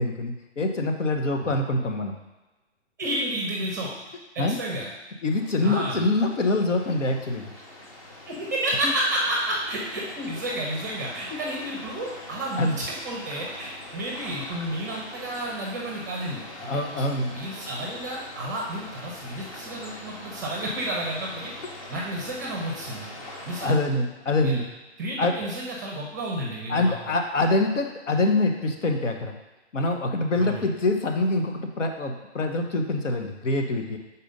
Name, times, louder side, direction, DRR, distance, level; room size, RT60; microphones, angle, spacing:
voice 1, 0.0-2.2 4.4-4.6 5.2-7.5 12.6-12.8 16.6-17.3 23.6-24.6 25.2-25.3 26.7-29.3 29.7-34.0, left 2 dB, 90° left, 5 dB, 1.1 m, -25 dB
voice 2, 3.0-3.9 4.3-4.9 5.6-6.0 8.3-16.8 17.3-21.5 21.9-23.7 24.4-24.6 25.0-26.9 30.4-30.7, right 1 dB, 15° right, -2 dB, 0.6 m, -31 dB
sound 1, 5.3-23.8, left 1 dB, 30° left, 0.8 m, -43 dB
5.1 x 4.2 x 5.3 m, 1.1 s
hypercardioid pair, 165°, 36 cm